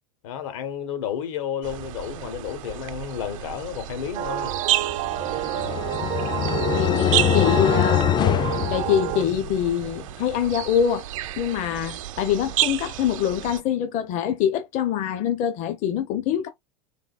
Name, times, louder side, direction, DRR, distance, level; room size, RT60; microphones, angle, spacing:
voice 1, 0.2-4.6, left 9 dB, 75° left, 1.3 m, -31 dB
sound 1, 1.6-13.6, right 13 dB, 75° right, 0.7 m, -31 dB
sound 2, 4.1-9.2, right 15 dB, 40° right, 0.4 m, -29 dB
sound 3, 5.0-9.6, left 11 dB, 25° left, 0.4 m, -24 dB
voice 2, 6.7-8.1 8.7-11.1 11.4-16.5, left 9 dB, 45° left, 0.7 m, -24 dB
3.9 x 3.8 x 2.4 m
supercardioid pair, 110°, 17 cm